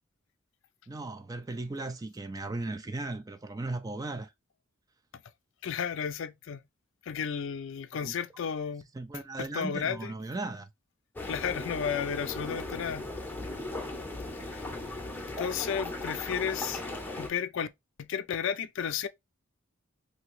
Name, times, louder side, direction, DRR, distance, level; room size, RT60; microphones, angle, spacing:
voice 1, 0.9-4.3 8.0-8.4 8.9-10.7, right 2 dB, 15° right, 0.3 m, -37 dB
voice 2, 5.6-6.6 7.1-8.8 9.4-10.1 11.2-13.1 14.5-14.7 15.4-16.8 17.2-17.7 18.0-19.1, left 7 dB, 65° left, 0.4 m, -33 dB
sound 1, 11.2-17.3, left 2 dB, 10° left, 0.8 m, -37 dB
2.9 x 2.7 x 3.0 m
head